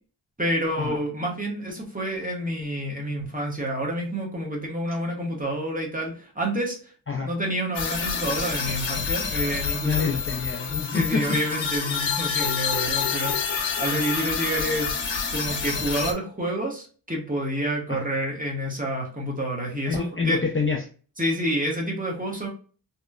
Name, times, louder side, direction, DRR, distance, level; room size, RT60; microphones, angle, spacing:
voice 1, 0.4-6.9 7.3-10.1 10.7-14.9 15.3-20.4 21.2-22.5, equal, 20° right, -1 dB, 0.8 m, -28 dB
sound 1, 7.7-16.1, left 6 dB, 80° left, 0.6 m, -28 dB
voice 2, 9.8-11.4 17.9-18.0 19.9-20.8, left 5 dB, 30° left, 0 dB, 0.4 m, -26 dB
2.9 x 2.1 x 2.3 m, 0.39 s
wide cardioid pair, 100°, 44 cm